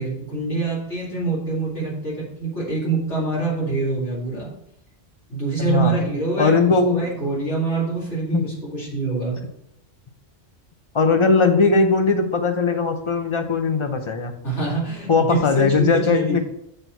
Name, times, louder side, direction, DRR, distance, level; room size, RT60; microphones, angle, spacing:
voice 1, 0.0-4.5 5.3-6.6 6.9-9.4 14.4-16.4, right 3 dB, 85° left, -6 dB, 2.9 m, -25 dB
voice 2, 5.6-6.0 6.4-7.0 8.3-8.5 10.9-14.3 15.1-16.4, left 4 dB, 35° left, 7 dB, 0.5 m, -19 dB
6.6 x 4.4 x 4.4 m, 0.79 s
omnidirectional pair, 1.2 m